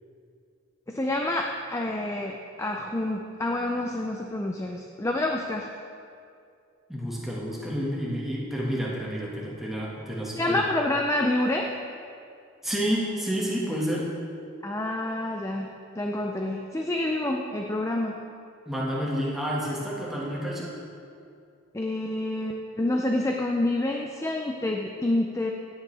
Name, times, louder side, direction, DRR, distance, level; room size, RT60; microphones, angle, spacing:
voice 1, 0.9-5.7 10.4-11.7 14.6-15.7 16.0-18.2 21.7-25.5, left 1 dB, 15° left, 2 dB, 0.4 m, -28 dB
voice 2, 6.9-10.6 12.6-14.1 18.6-20.7, equal, ahead, -5 dB, 1.7 m, -29 dB
16.0 x 8.8 x 3.4 m, 2.4 s
head